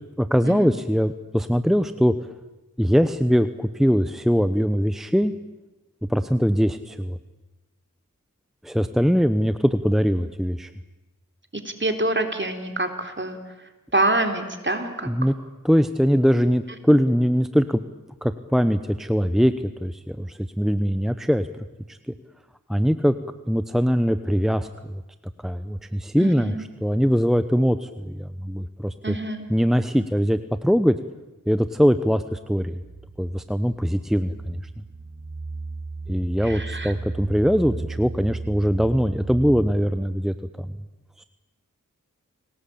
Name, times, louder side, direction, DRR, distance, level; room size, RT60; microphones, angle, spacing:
voice 1, 0.2-2.1 2.8-5.3 6.1-7.2 8.6-10.7 15.1-15.3 15.6-17.8 18.2-22.0 22.7-23.1 23.5-25.0 25.4-29.2 29.5-30.9 31.5-32.8 33.2-34.6 36.1-40.7 41.2-41.3, equal, ahead, 11 dB, 1.0 m, -22 dB
voice 2, 11.5-13.4 13.9-15.1 26.2-26.6 29.0-29.5 36.4-36.9, right 2 dB, 35° right, 6 dB, 3.6 m, -26 dB
sound 1, 32.8-40.2, right 3 dB, 60° right, 3.3 m, -36 dB
29.5 x 19.0 x 8.6 m, 1.1 s
wide cardioid pair, 50°, 32 cm